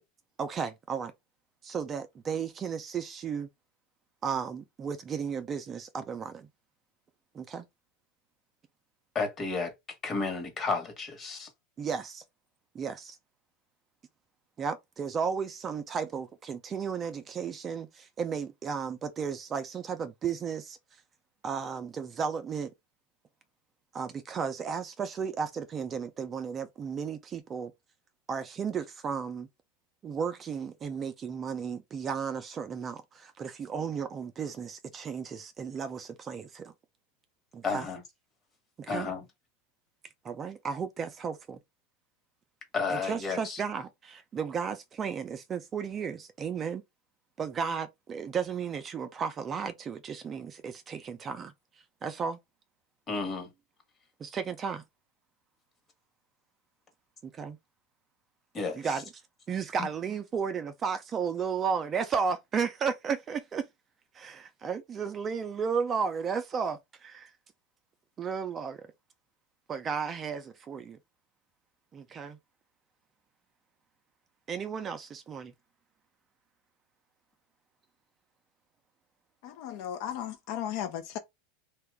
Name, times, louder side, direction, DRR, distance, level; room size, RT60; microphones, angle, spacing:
voice 1, 0.4-1.1 1.6-3.5 4.2-6.5 7.3-7.6 11.8-12.2 12.7-13.2 14.6-20.8 21.4-22.7 23.9-27.7 28.3-29.5 30.0-36.7 37.5-37.9 38.8-39.1 40.2-41.6 42.9-46.8 47.4-51.5 52.0-52.4 54.2-54.8 57.2-57.6 58.7-59.0 59.5-63.6 64.1-67.3 68.2-68.8 69.7-71.0 71.9-72.4 74.5-75.5, right 6 dB, 25° right, 0.4 m, -34 dB
voice 2, 9.1-9.7 10.0-11.5 37.6-38.0 38.9-39.2 42.7-43.6 53.1-53.5 58.5-59.0 59.8-59.9, left 4 dB, 25° left, 1.2 m, -32 dB
voice 3, 79.4-81.2, left 10 dB, 60° left, 0.5 m, -35 dB
2.8 x 2.3 x 3.4 m
supercardioid pair, 130°, 0 cm